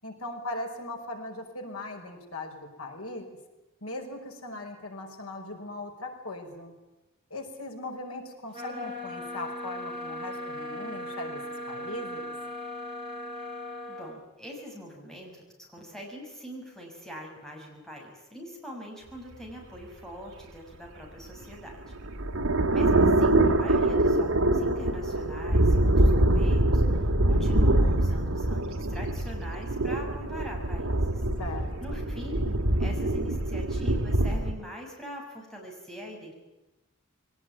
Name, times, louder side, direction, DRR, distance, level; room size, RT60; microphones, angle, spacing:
voice 1, 0.0-3.3 3.8-6.7 7.3-12.3 31.4-32.1, left 2 dB, 90° left, 2 dB, 5.5 m, -39 dB
sound 1, 8.5-14.1, left 1 dB, 25° right, 7.7 m, -38 dB
voice 2, 13.9-21.9 22.7-31.2 31.8-36.3, equal, ahead, -1 dB, 6.7 m, -43 dB
sound 2, 21.4-34.5, right 1 dB, 80° right, 2.4 m, -24 dB
22.5 x 18.5 x 9.4 m, 1.0 s
head